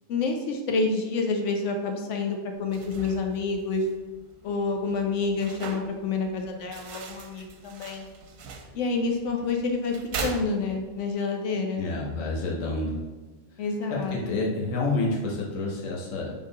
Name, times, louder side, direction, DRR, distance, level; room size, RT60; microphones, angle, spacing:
voice 1, 0.1-3.9 4.4-8.1 8.7-11.9 13.6-14.5, left 4 dB, 70° left, 3 dB, 0.9 m, -28 dB
sound 1, 2.6-11.1, right 4 dB, 85° right, 1.0 m, -40 dB
voice 2, 11.7-13.0 13.9-16.3, left 2 dB, 90° left, -2 dB, 1.2 m, -29 dB
4.0 x 3.5 x 3.8 m, 1.3 s
omnidirectional pair, 1.3 m